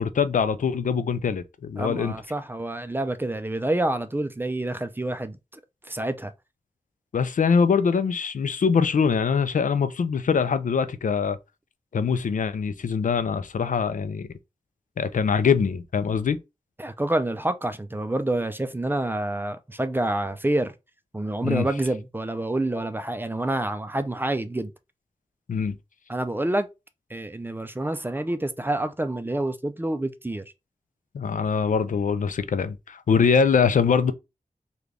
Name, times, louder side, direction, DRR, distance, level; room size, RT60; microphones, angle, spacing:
voice 1, 0.0-2.1 7.1-11.4 11.9-14.3 15.0-16.4 21.4-21.7 25.5-25.8 31.1-34.1, left 6 dB, 70° left, 0.4 m, -23 dB
voice 2, 1.8-5.4 5.9-6.3 16.8-20.7 21.1-24.7 26.1-26.7 27.1-30.4, right 1 dB, 15° right, 0.4 m, -27 dB
3.7 x 2.3 x 3.3 m
wide cardioid pair, 85°, 14 cm